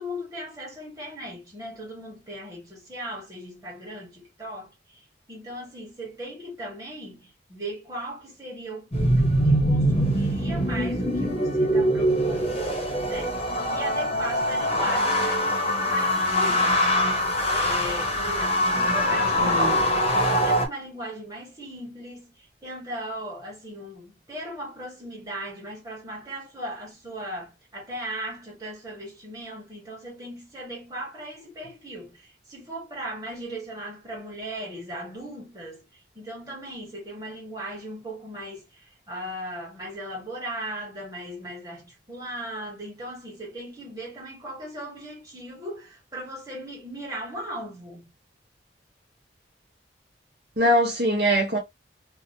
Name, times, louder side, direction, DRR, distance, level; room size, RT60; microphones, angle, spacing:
voice 1, 0.0-4.7 5.3-13.4 13.7-17.0 17.5-20.1 20.4-22.3 22.6-35.8 36.1-48.0, right 1 dB, 20° right, 1.4 m, -37 dB
sound 1, 8.9-20.7, equal, 35° left, 0.8 m, -23 dB
voice 2, 19.4-19.8 50.6-51.6, equal, 60° right, 0.9 m, -22 dB
2.8 x 2.2 x 2.7 m
head